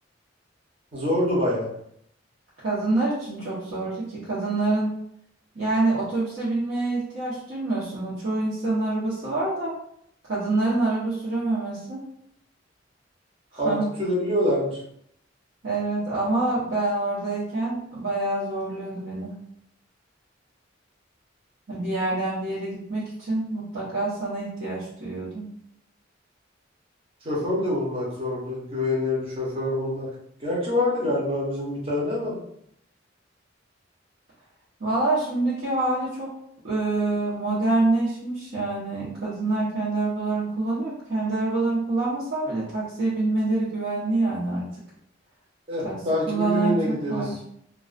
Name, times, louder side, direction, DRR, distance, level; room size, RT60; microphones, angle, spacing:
voice 1, 0.9-1.7 13.6-14.8 27.2-30.1 30.4-32.4 45.7-47.4, left 1 dB, 30° right, -6 dB, 0.8 m, -26 dB
voice 2, 2.6-4.9 5.5-9.7 10.2-12.0 13.5-13.9 15.6-19.4 21.7-25.5 34.8-36.3 36.6-44.6 45.8-45.9 46.3-47.4, right 2 dB, 65° right, -10 dB, 0.8 m, -26 dB
2.3 x 2.2 x 2.4 m, 0.72 s
head